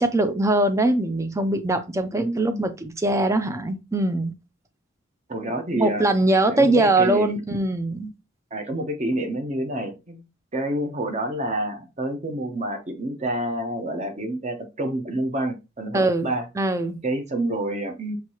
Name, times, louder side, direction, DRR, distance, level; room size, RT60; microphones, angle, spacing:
voice 1, 0.0-4.3 5.7-8.1 15.9-16.3 16.6-17.0, right 2 dB, 15° right, 0.5 m, -22 dB
voice 2, 2.2-2.7 5.3-6.1 6.5-7.4 8.5-10.2 10.5-16.5 17.0-18.2, right 1 dB, 35° right, 0.9 m, -28 dB
5.9 x 2.7 x 2.9 m
head